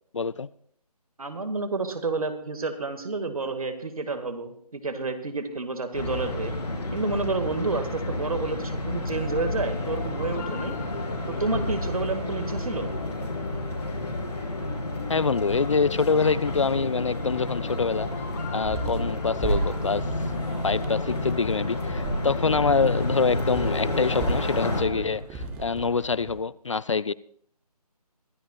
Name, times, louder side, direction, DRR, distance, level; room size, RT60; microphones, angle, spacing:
voice 1, 0.1-0.5 15.1-18.1 18.5-20.0 20.6-27.1, left 5 dB, 50° left, 19 dB, 0.4 m, -25 dB
voice 2, 1.2-6.5 6.9-10.8 11.3-12.9, right 3 dB, 60° right, 8 dB, 1.8 m, -30 dB
sound 1, 5.9-24.8, left 1 dB, 75° left, 4.0 m, -31 dB
sound 2, 9.1-25.1, left 5 dB, 25° left, 1.4 m, -40 dB
sound 3, 18.6-26.4, right 2 dB, 5° right, 0.7 m, -34 dB
23.0 x 12.0 x 2.3 m, 0.63 s
figure-of-eight pair, 155°, 20 cm